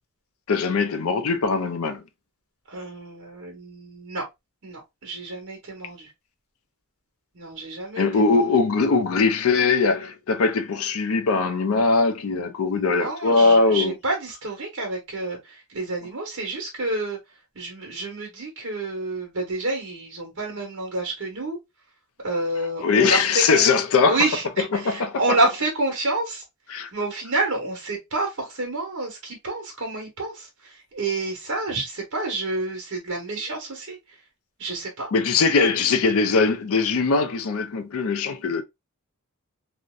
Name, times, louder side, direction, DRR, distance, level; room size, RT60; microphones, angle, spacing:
voice 1, 0.5-2.0 8.0-14.0 22.8-24.2 24.7-25.4 26.7-26.9 35.1-38.6, left 4 dB, 70° left, 0.5 m, -21 dB
voice 2, 2.7-4.2 4.6-6.1 7.3-8.1 8.3-8.4 12.7-17.2 17.5-21.6 22.2-23.7 24.1-26.4 26.9-34.0 34.6-35.1, right 2 dB, 60° right, 1.1 m, -29 dB
2.7 x 2.1 x 2.3 m
head